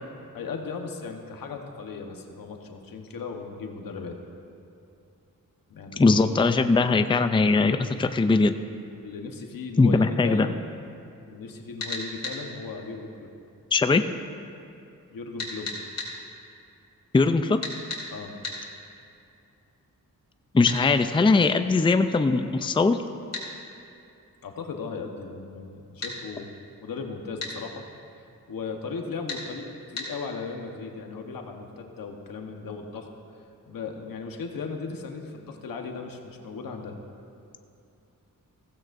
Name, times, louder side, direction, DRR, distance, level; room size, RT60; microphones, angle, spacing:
voice 1, 0.3-4.2 5.7-6.2 6.6-6.7 9.0-10.6 11.3-13.3 15.1-15.7 18.1-18.4 24.4-26.5 26.8-27.8 28.5-33.1 33.7-37.0, left 4 dB, 85° left, 3 dB, 1.2 m, -37 dB
voice 2, 6.0-8.5 9.8-10.5 13.7-14.0 17.1-17.6 20.5-23.0, left 3 dB, 15° left, 9 dB, 0.5 m, -20 dB
sound 1, 11.8-12.4 15.4-16.1 17.6-18.0 18.4-18.6 20.7-20.8 23.3-23.5 26.0-26.2 27.4-27.6 29.3-29.4 30.0-30.1, left 3 dB, 45° left, 3.4 m, -33 dB
16.0 x 15.5 x 2.6 m, 2.6 s
cardioid pair, 75°, 33 cm